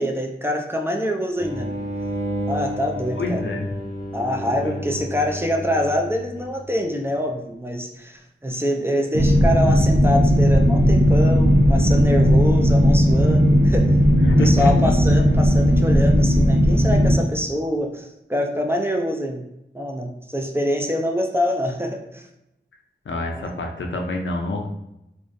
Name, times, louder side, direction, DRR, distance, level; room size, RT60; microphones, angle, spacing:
voice 1, 0.0-1.7 2.5-3.4 4.1-13.9 14.4-19.4 19.7-22.2 23.3-23.5, equal, 10° right, 2 dB, 0.3 m, -25 dB
sound 1, 1.4-6.7, equal, 35° right, 0.9 m, -31 dB
voice 2, 3.1-3.7 4.6-4.8 14.2-14.9 23.1-24.7, left 2 dB, 75° left, 2 dB, 0.4 m, -26 dB
sound 2, 9.1-17.1, equal, 65° right, 0.7 m, -16 dB
2.4 x 2.1 x 2.5 m, 0.86 s
wide cardioid pair, 45°, 19 cm